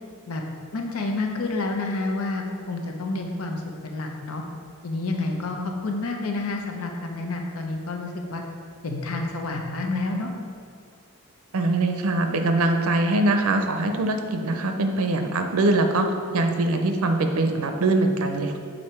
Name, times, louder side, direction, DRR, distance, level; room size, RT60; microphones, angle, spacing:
voice 1, 0.7-4.4 4.8-5.6 5.8-8.4 8.8-10.3, left 2 dB, 85° left, 2 dB, 0.7 m, -29 dB
voice 2, 11.5-18.6, right 2 dB, 85° right, 5 dB, 0.6 m, -23 dB
6.5 x 3.9 x 4.4 m, 2.2 s
head